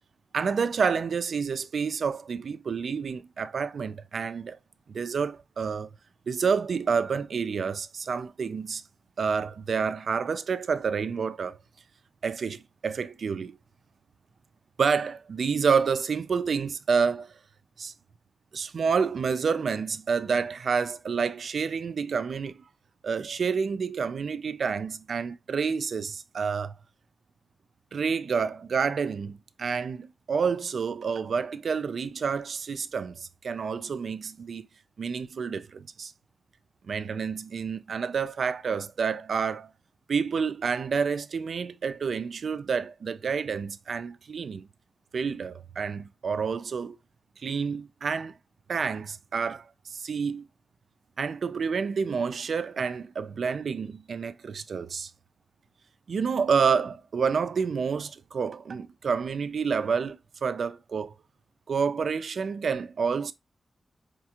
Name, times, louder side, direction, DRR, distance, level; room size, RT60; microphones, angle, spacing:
voice 1, 0.3-4.6 4.9-5.9 6.3-8.8 9.2-11.6 12.2-13.6 14.8-17.3 17.8-17.9 18.5-22.6 23.0-26.8 27.9-34.7 35.0-36.1 36.8-39.7 40.1-44.7 45.1-47.0 47.4-48.3 48.7-50.4 51.2-55.1 56.1-61.1 61.7-63.3, right 5 dB, 65° right, 0.3 m, -29 dB
4.9 x 2.4 x 2.8 m
wide cardioid pair, 160°, 0 cm